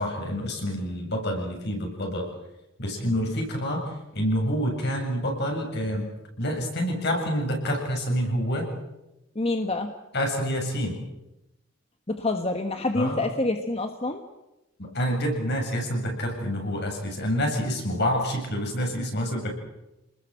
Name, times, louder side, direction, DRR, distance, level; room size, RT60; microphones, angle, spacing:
voice 1, 0.0-2.3 2.8-6.1 6.4-8.7 10.1-11.0 12.9-13.2 14.8-19.5, equal, 60° left, 2 dB, 7.7 m, -27 dB
voice 2, 9.3-9.9 12.1-14.2, left 2 dB, 30° left, 6 dB, 1.4 m, -27 dB
28.5 x 20.5 x 7.9 m, 0.93 s
head